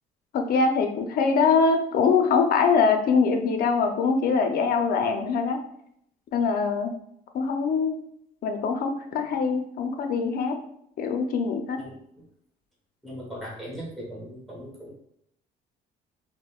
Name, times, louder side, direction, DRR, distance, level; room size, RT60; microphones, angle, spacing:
voice 1, 0.3-5.6 6.3-6.9 7.3-8.0 8.4-10.6 11.0-11.8, left 5 dB, 60° left, 5 dB, 0.5 m, -23 dB
voice 2, 13.0-15.0, equal, ahead, -5 dB, 1.0 m, -39 dB
4.9 x 2.1 x 2.3 m, 0.72 s
cardioid pair, 110°, 17 cm